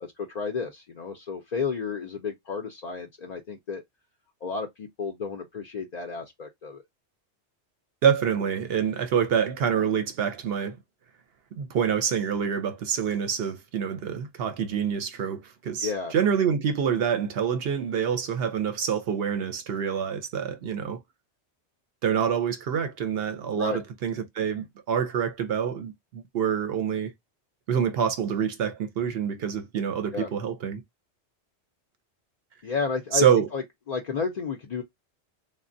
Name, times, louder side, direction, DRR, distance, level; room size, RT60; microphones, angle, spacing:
voice 1, 0.0-3.8 4.4-6.8 15.8-16.1 23.5-23.8 30.1-30.3 32.6-33.3 33.5-34.8, left 5 dB, 55° left, 0.5 m, -32 dB
voice 2, 8.0-10.8 11.6-21.0 22.0-27.1 27.7-30.8 33.1-33.5, right 7 dB, 65° right, 0.7 m, -26 dB
3.2 x 2.1 x 2.5 m
omnidirectional pair, 1.2 m